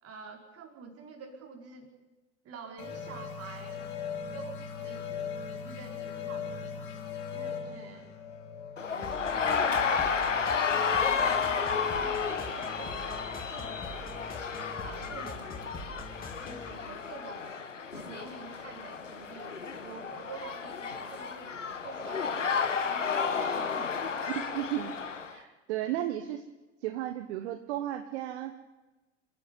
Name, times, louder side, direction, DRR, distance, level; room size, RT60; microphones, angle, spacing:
voice 1, 0.0-1.9 2.4-3.9 4.3-5.2 5.5-7.0 7.3-8.1 8.8-9.8 10.9-14.2 14.8-15.6 16.4-17.6 17.9-24.3, right 5 dB, 40° right, 3 dB, 4.6 m, -48 dB
sound 1, 2.8-10.0, left 6 dB, 65° left, 4.6 m, -39 dB
sound 2, 8.8-25.3, left 6 dB, 90° left, 1.4 m, -32 dB
sound 3, 9.0-16.7, left 2 dB, 25° left, 3.4 m, -44 dB
voice 2, 24.3-24.9 25.2-26.4 26.8-28.5, right 12 dB, 65° right, 9 dB, 1.3 m, -34 dB
27.5 x 11.0 x 9.5 m, 1.1 s
figure-of-eight pair, 80°, 36 cm